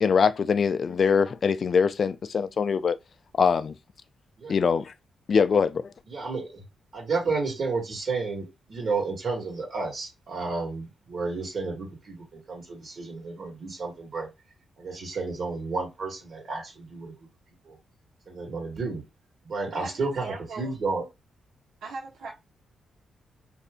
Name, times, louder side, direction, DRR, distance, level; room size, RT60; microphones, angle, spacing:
voice 1, 0.0-3.0 3.4-3.7 4.5-4.9 5.3-5.9, left 6 dB, 50° left, 0.4 m, -23 dB
voice 2, 6.1-6.6 6.9-14.3 14.8-17.1 17.6-17.8 18.3-19.0 19.4-21.0, right 4 dB, 50° right, 1.6 m, -31 dB
voice 3, 19.7-20.7 21.8-22.3, right 4 dB, 80° right, 1.1 m, -39 dB
2.7 x 2.4 x 3.5 m
cardioid pair, 105°, 0 cm